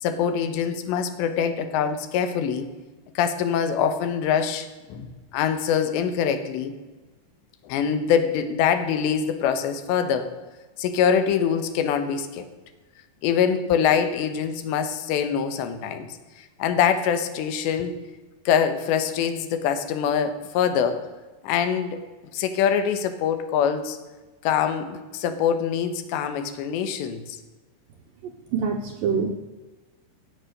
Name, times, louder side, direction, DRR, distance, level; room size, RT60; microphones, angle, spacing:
voice 1, 0.0-2.7 3.2-5.1 5.3-6.7 7.6-10.3 10.8-12.5 13.2-16.1 16.6-17.9 18.5-21.0 21.4-22.0 22.3-24.0 24.4-27.4, left 7 dB, 80° left, 9 dB, 3.2 m, -24 dB
voice 2, 28.2-29.3, right 5 dB, 90° right, 3 dB, 1.9 m, -26 dB
17.0 x 7.4 x 6.5 m, 1.2 s
omnidirectional pair, 5.1 m